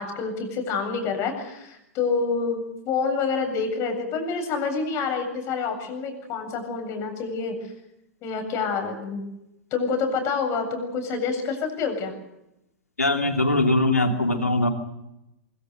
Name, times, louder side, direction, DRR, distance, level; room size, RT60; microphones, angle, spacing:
voice 1, 0.0-7.6 8.2-9.2 9.7-12.1, left 5 dB, 35° left, 5 dB, 7.7 m, -27 dB
voice 2, 13.0-14.7, left 2 dB, 85° left, 5 dB, 2.9 m, -21 dB
24.0 x 24.0 x 6.7 m, 0.86 s
figure-of-eight pair, 100°, 8 cm